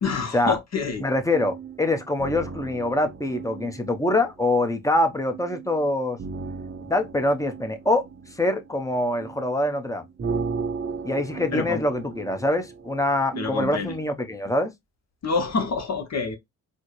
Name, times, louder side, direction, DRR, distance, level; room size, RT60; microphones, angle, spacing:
voice 1, 0.0-1.0 11.5-11.8 13.3-13.9 15.2-16.4, left 5 dB, 50° left, 0.9 m, -27 dB
sound 1, 0.9-14.1, right 5 dB, 35° right, 0.7 m, -36 dB
voice 2, 1.0-6.2 6.8-10.0 11.0-14.7, left 1 dB, 10° left, 0.7 m, -24 dB
4.2 x 2.1 x 3.0 m
cardioid pair, 80°, 35 cm